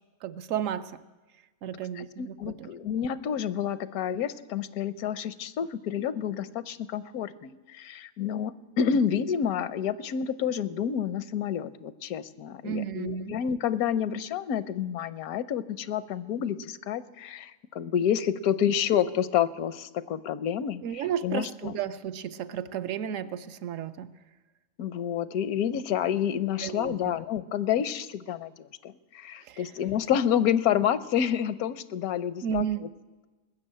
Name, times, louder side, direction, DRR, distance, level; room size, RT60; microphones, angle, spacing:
voice 1, 0.2-1.0 1.6-2.7 12.6-13.4 20.8-24.1 26.6-27.2 29.5-29.6 32.4-32.8, right 9 dB, 70° right, 12 dB, 0.9 m, -33 dB
voice 2, 2.0-21.8 24.8-32.7, left 9 dB, 80° left, 16 dB, 1.1 m, -29 dB
20.5 x 6.8 x 8.8 m, 1.2 s
omnidirectional pair, 1.5 m